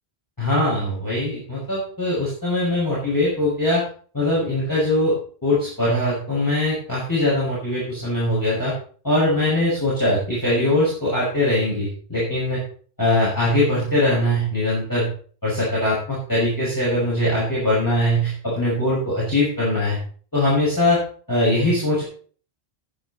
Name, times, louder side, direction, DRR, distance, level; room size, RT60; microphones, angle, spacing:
voice 1, 0.4-3.8 4.1-5.1 5.4-8.7 9.0-12.6 13.0-15.1 15.4-20.0 20.3-21.0 21.3-22.0, left 1 dB, 20° left, -8 dB, 6.3 m, -21 dB
13.5 x 10.0 x 4.2 m, 0.43 s
omnidirectional pair, 1.1 m